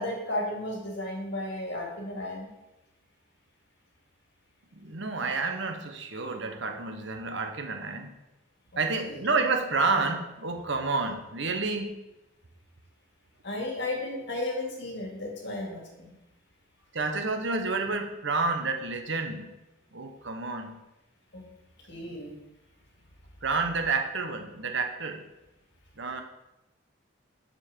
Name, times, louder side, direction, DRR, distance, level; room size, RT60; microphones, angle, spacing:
voice 1, 0.0-2.5 9.0-9.2 13.4-16.1 21.3-21.5 21.9-22.3, left 1 dB, 55° left, 0 dB, 2.2 m, -34 dB
voice 2, 4.7-8.2 8.8-12.0 16.9-19.5 19.9-20.8 22.0-22.1 23.4-25.2 26.0-26.2, right 3 dB, 60° right, 5 dB, 1.0 m, -30 dB
7.2 x 5.6 x 6.6 m, 0.96 s
head